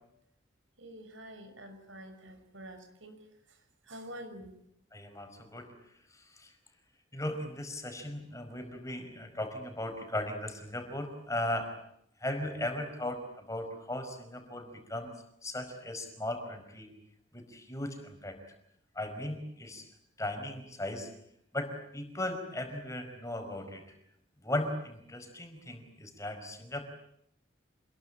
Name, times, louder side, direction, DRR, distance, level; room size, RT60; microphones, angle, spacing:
voice 1, 0.8-3.2 3.8-4.5, right 1 dB, 90° right, 8 dB, 6.2 m, -47 dB
voice 2, 4.9-5.7 6.1-6.5 7.1-11.7 12.2-15.1 15.4-16.9 17.3-18.4 18.9-19.8 20.2-21.1 21.5-23.8 24.4-26.9, left 1 dB, 15° left, 6 dB, 4.9 m, -37 dB
27.5 x 22.0 x 8.8 m, 0.75 s
head